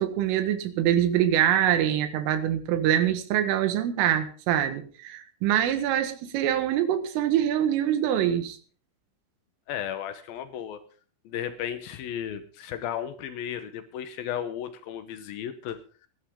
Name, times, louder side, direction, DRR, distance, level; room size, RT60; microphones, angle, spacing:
voice 1, 0.0-8.6, right 10 dB, 80° right, 10 dB, 4.0 m, -24 dB
voice 2, 9.7-10.8 11.2-16.1, left 10 dB, 85° left, 10 dB, 2.1 m, -34 dB
20.5 x 11.5 x 3.7 m, 0.39 s
omnidirectional pair, 5.7 m